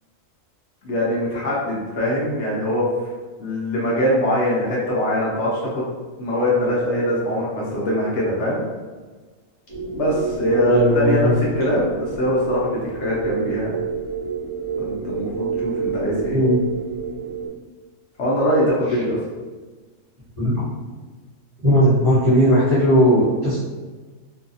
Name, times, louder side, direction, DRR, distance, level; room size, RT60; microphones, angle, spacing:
voice 1, 0.8-2.9 3.4-5.9 6.2-8.6 9.8-13.7 14.8-16.4 18.2-19.2, equal, 65° left, -5 dB, 0.9 m, -22 dB
sound 1, 9.7-17.5, right 5 dB, 50° right, 0.4 m, -29 dB
voice 2, 10.5-11.3 16.3-16.6 20.4-20.7 21.6-23.6, equal, 25° right, -12 dB, 1.0 m, -17 dB
2.7 x 2.3 x 2.6 m, 1.3 s
omnidirectional pair, 1.4 m